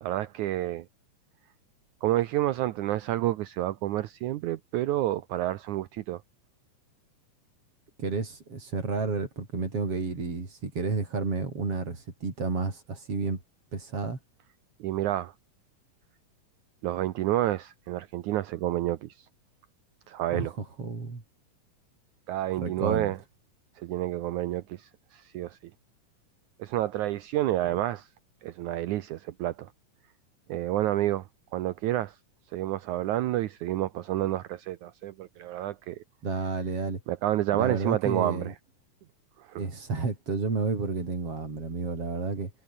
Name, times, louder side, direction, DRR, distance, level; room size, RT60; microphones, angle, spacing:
voice 1, 0.0-0.9 2.0-6.2 14.8-15.3 16.8-19.1 20.1-20.5 22.3-23.2 23.8-25.6 26.6-28.1 28.4-29.7 30.5-31.3 31.5-32.2 32.5-36.0 37.1-38.5 39.4-39.6, right 14 dB, 75° right, 2.2 m, -29 dB
voice 2, 8.0-13.4 13.7-14.2 20.3-20.5 20.8-21.2 22.6-23.1 27.6-27.8 36.2-37.0 37.5-38.5 39.6-42.5, right 4 dB, 45° right, 5.9 m, -31 dB
omnidirectional pair, 3.8 m